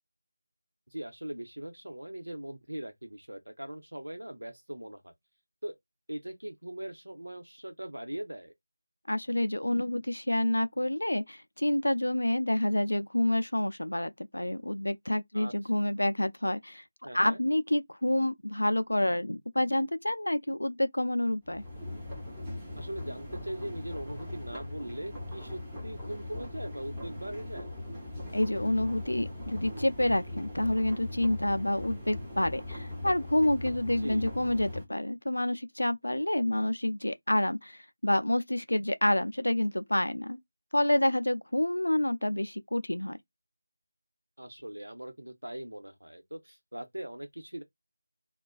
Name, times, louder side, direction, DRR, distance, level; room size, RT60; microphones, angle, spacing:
voice 1, 0.9-5.1 5.6-5.7 6.1-8.5 15.3-15.5 17.0-17.4 22.8-27.7 34.0-34.3 44.4-47.6, right 1 dB, 85° right, 0.8 m, -40 dB
voice 2, 9.1-16.8 17.1-21.6 28.3-40.4 40.7-43.2, left 1 dB, 85° left, 0.4 m, -28 dB
sound 1, 21.4-34.8, left 1 dB, 5° right, 0.8 m, -40 dB
2.4 x 2.2 x 2.4 m
figure-of-eight pair, 165°, 0 cm